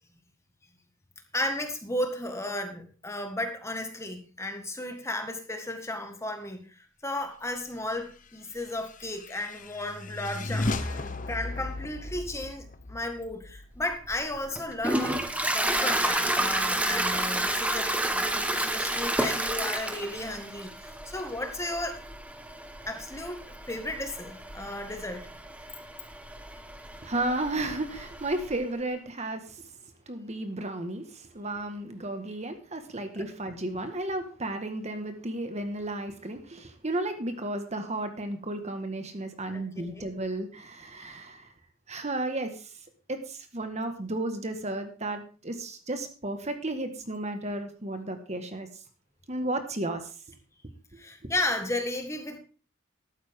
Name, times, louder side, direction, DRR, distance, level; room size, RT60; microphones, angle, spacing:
voice 1, 1.3-15.2 15.5-20.7 21.0-22.0 22.9-25.3 39.5-40.0 51.0-52.4, left 1 dB, 15° left, 6 dB, 1.7 m, -34 dB
sound 1, 8.5-14.2, left 2 dB, 40° left, 1.0 m, -35 dB
Toilet flush, 13.8-28.5, right 1 dB, 5° right, 1.3 m, -31 dB
voice 2, 27.0-29.7 30.1-41.5 41.9-48.8 49.3-50.1, right 2 dB, 35° right, 7 dB, 1.6 m, -33 dB
14.0 x 12.0 x 3.6 m, 0.36 s
head